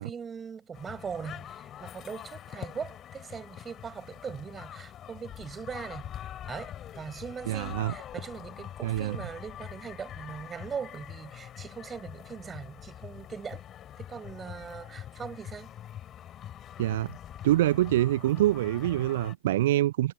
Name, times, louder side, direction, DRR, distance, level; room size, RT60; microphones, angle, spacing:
voice 1, 0.0-6.1 6.4-13.6 14.0-15.7, right 6 dB, 20° right, 6.0 m, -40 dB
sound 1, 0.7-19.3, left 11 dB, 30° left, 3.3 m, -44 dB
voice 2, 7.5-8.0 8.8-9.2 16.8-17.2 17.4-20.1, right 14 dB, 55° right, 0.8 m, -25 dB
figure-of-eight pair, 90°, 0 cm